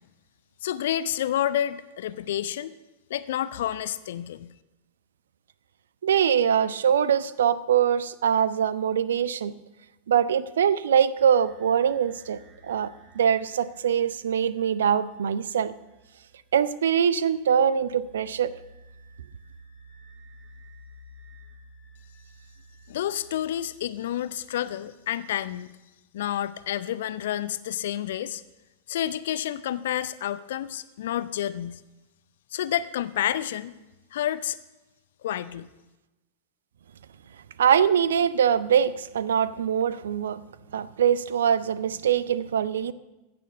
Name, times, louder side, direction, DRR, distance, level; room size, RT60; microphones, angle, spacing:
voice 1, 0.6-2.7 3.1-4.5 22.9-25.7 26.1-28.4 28.9-31.8 32.5-33.7 34.1-34.6 35.2-35.7, left 11 dB, 60° left, 15 dB, 0.5 m, -29 dB
voice 2, 6.0-9.5 10.1-15.7 16.5-18.5 37.6-40.4 40.7-42.9, right 8 dB, 65° right, 18 dB, 0.5 m, -23 dB
sound 1, 11.2-24.3, right 1 dB, 30° right, 2.9 m, -53 dB
15.5 x 6.9 x 6.5 m, 1.0 s
figure-of-eight pair, 90°, 0 cm